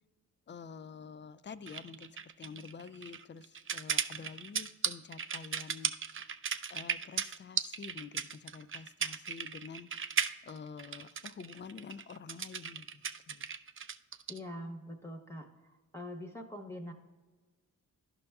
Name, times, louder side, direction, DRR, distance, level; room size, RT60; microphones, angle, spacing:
voice 1, 0.5-5.9 6.7-9.9 10.4-13.5, left 6 dB, 30° left, 14 dB, 0.4 m, -48 dB
sound 1, 1.7-14.4, right 7 dB, 35° right, 0.4 m, -36 dB
voice 2, 14.3-15.5 15.9-16.9, left 1 dB, 5° left, 1 dB, 0.9 m, -43 dB
11.5 x 5.4 x 2.3 m, 1.3 s
supercardioid pair, 50°, 39 cm